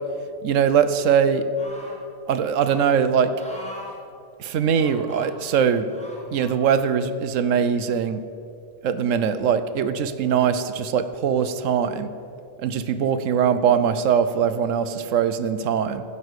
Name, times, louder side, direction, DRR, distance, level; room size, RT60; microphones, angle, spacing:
voice 1, 0.4-1.5 2.3-3.3 4.4-5.9 6.3-8.2 8.8-12.1 12.6-16.0, right 7 dB, 75° right, 11 dB, 1.0 m, -21 dB
sound 1, 1.6-2.0 2.6-2.8 3.4-4.0 4.7-5.3 5.9-6.6 7.3-7.4, equal, 5° left, 1.9 m, -41 dB
15.0 x 5.6 x 8.0 m, 2.5 s
omnidirectional pair, 1.4 m